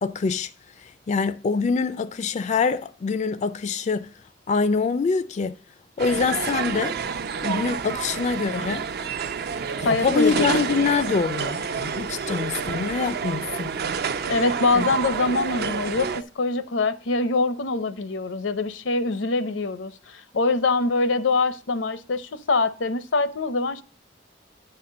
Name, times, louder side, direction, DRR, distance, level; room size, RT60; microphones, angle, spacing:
voice 1, 0.0-0.5 0.8-4.1 4.5-5.5 6.0-7.0 7.4-8.8 9.8-13.7 14.7-14.9, left 5 dB, 40° left, 0.4 m, -25 dB
sound 1, 6.0-16.2, right 6 dB, 60° right, 0.5 m, -29 dB
voice 2, 9.8-10.8 14.3-23.8, left 3 dB, 85° left, 0.7 m, -24 dB
9.8 x 4.3 x 6.3 m
head